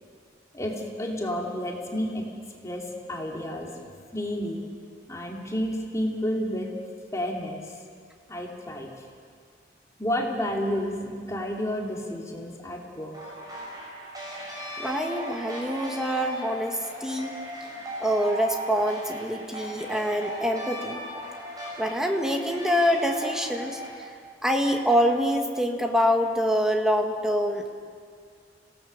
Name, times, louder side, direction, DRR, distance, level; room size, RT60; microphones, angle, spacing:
voice 1, 0.5-2.3 2.6-3.7 4.1-4.6 5.1-6.7 7.1-7.6 8.3-8.9 10.0-13.3, equal, 15° left, -1 dB, 2.7 m, -30 dB
sound 1, 13.1-23.9, equal, 20° right, 7.0 m, -37 dB
voice 2, 14.8-17.3 18.0-21.0 21.8-23.8 24.4-27.7, equal, 5° right, 2 dB, 1.7 m, -25 dB
27.5 x 17.5 x 6.7 m, 2.1 s
head